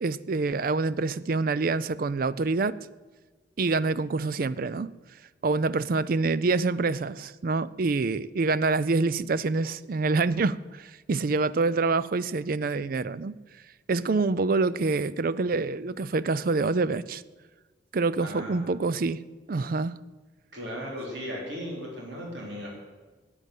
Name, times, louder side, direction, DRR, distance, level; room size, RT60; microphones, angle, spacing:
voice 1, 0.0-2.8 3.6-4.9 5.4-13.4 13.9-17.2 17.9-19.2 19.5-19.9, right 3 dB, 50° right, 17 dB, 0.4 m, -26 dB
voice 2, 18.2-18.6 20.5-22.7, equal, 65° right, -2 dB, 3.9 m, -36 dB
12.0 x 8.9 x 8.2 m, 1.3 s
head